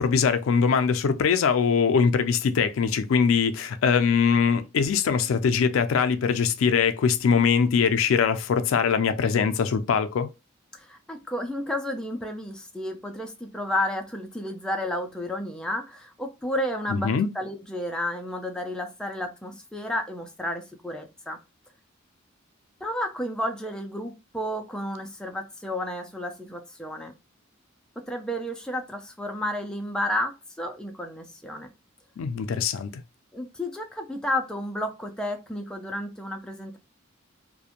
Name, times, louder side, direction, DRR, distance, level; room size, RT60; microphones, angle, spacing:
voice 1, 0.0-10.3 16.9-17.3 32.2-33.0, left 6 dB, 80° left, 0.4 m, -22 dB
voice 2, 10.7-21.4 22.8-27.1 28.1-31.7 33.3-36.8, left 1 dB, 5° left, 0.3 m, -32 dB
2.4 x 2.1 x 2.8 m
head